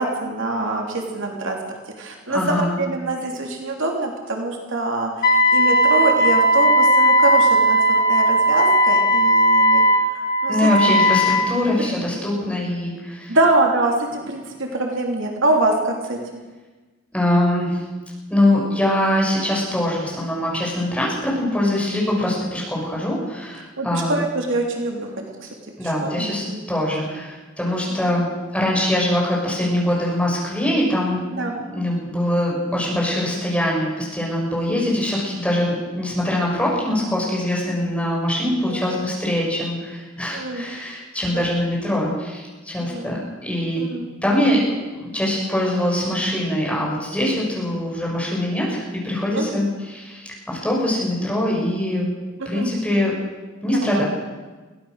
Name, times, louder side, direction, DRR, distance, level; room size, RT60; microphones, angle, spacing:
voice 1, 0.0-10.7 11.8-12.0 12.3-12.5 13.3-16.4 23.8-25.5 25.8-26.6 28.1-28.2 31.3-31.6 34.7-35.1 38.6-39.0 40.3-40.7 41.3-41.5 42.8-43.1 43.8-44.1 49.3-49.6 52.4-52.7 53.7-54.0, right 2 dB, 65° right, 1 dB, 3.3 m, -25 dB
voice 2, 2.3-2.7 10.5-13.4 17.1-17.8 18.3-24.2 25.8-28.3 28.5-31.2 31.7-43.8 44.2-44.6 45.0-49.6 49.9-52.1 52.5-53.1 53.6-54.0, left 1 dB, 5° left, -4 dB, 6.9 m, -23 dB
Wind instrument woodwind instrument, 5.2-11.5, equal, 45° left, 2.9 m, -16 dB
23.0 x 17.5 x 6.6 m, 1.3 s
head